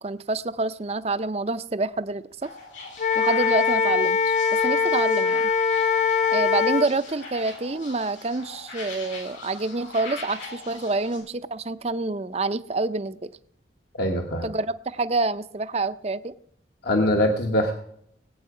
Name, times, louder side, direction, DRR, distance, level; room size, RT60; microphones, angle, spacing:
voice 1, 0.0-2.5 3.1-4.4 4.6-5.5 6.3-13.3 14.4-16.4, right 3 dB, 35° right, 13 dB, 0.5 m, -27 dB
sound 1, 2.4-11.2, left 3 dB, 85° left, 6.9 m, -42 dB
Wind instrument woodwind instrument, 3.0-6.9, left 5 dB, 40° left, 0.7 m, -22 dB
voice 2, 13.9-14.5 16.8-17.7, left 1 dB, 55° left, 3 dB, 1.2 m, -22 dB
20.5 x 8.7 x 4.9 m, 0.70 s
head